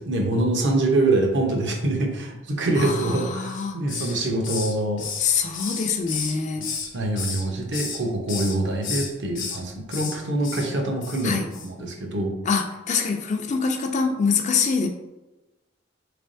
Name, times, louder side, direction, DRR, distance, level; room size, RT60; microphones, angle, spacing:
voice 1, 0.0-5.1 6.9-12.4, right 2 dB, 60° right, 2 dB, 0.7 m, -25 dB
voice 2, 2.8-3.8 5.2-6.7 11.2-11.5 12.4-14.9, left 5 dB, 35° left, 5 dB, 0.4 m, -24 dB
Hiss, 3.4-4.2 4.4-6.9 7.2-8.0 8.3-8.5 8.8-9.6 9.9-10.2 10.4-10.7 11.0-11.2 11.5-11.7, left 6 dB, 70° left, 0.8 m, -32 dB
3.7 x 3.3 x 2.6 m, 1.0 s
head